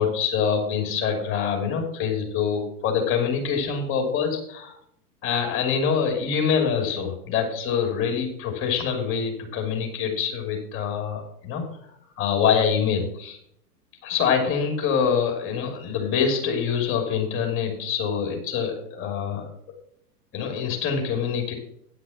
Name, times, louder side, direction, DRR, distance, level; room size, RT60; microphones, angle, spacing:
voice 1, 0.0-4.7 5.2-11.6 12.2-13.4 14.0-19.4 20.3-21.5, left 7 dB, 25° left, 3 dB, 2.9 m, -25 dB
9.6 x 6.0 x 6.4 m, 0.71 s
hypercardioid pair, 130°, 46 cm